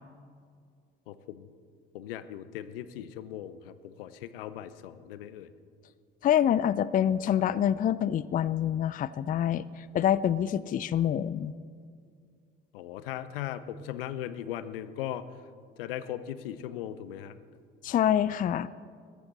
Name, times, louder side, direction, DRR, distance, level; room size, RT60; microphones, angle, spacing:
voice 1, 1.1-1.5 1.9-5.5 12.7-15.3 15.8-17.4, left 11 dB, 70° left, 14 dB, 0.8 m, -38 dB
voice 2, 6.2-11.5 17.8-18.7, left 10 dB, 30° left, 18 dB, 0.4 m, -26 dB
21.0 x 13.5 x 4.1 m, 2.2 s
figure-of-eight pair, 55°, 29 cm